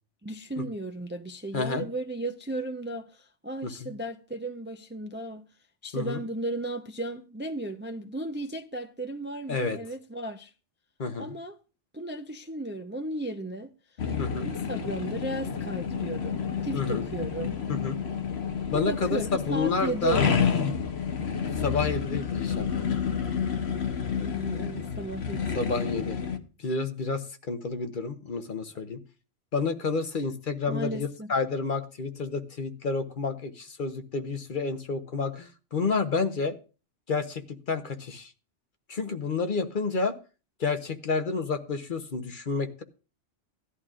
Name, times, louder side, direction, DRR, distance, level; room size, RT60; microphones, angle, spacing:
voice 1, 0.2-5.5 5.8-10.5 11.2-11.5 11.9-13.7 14.4-17.6 18.7-20.5 24.1-25.4 30.7-31.3, right 2 dB, 15° right, 0.5 m, -35 dB
voice 2, 1.5-1.8 3.6-3.9 5.9-6.2 9.5-9.8 11.0-11.3 14.2-14.5 16.7-17.1 17.7-18.0 18.7-20.3 21.2-21.3 21.6-22.8 25.3-26.2 26.6-29.0 29.5-36.6 37.1-38.3 38.9-40.1 40.6-42.8, left 4 dB, 50° left, 1.0 m, -30 dB
sound 1, 14.0-26.4, left 6 dB, 65° left, 1.2 m, -30 dB
16.5 x 11.0 x 2.4 m
omnidirectional pair, 1.2 m